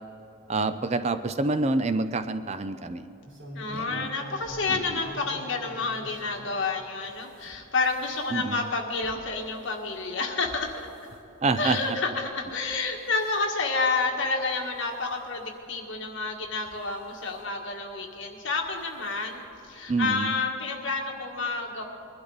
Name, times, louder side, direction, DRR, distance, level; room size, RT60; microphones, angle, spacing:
voice 1, 0.5-3.0 3.7-4.1 4.7-5.0 8.3-8.6 11.4-11.8 19.9-20.3, right 3 dB, 30° right, 11 dB, 0.4 m, -27 dB
sound 1, 3.3-6.6 7.0-11.2 11.5-11.9 12.5-12.8 13.1-13.4 14.0-14.1 14.4-14.5 15.7-15.8 16.5-17.4 18.5-18.7 19.0-19.1 19.5-19.6, right 1 dB, 55° right, 3.7 m, -46 dB
voice 2, 3.5-10.9 11.6-21.8, left 3 dB, 60° left, 1 dB, 1.7 m, -29 dB
21.5 x 12.0 x 4.0 m, 3.0 s
head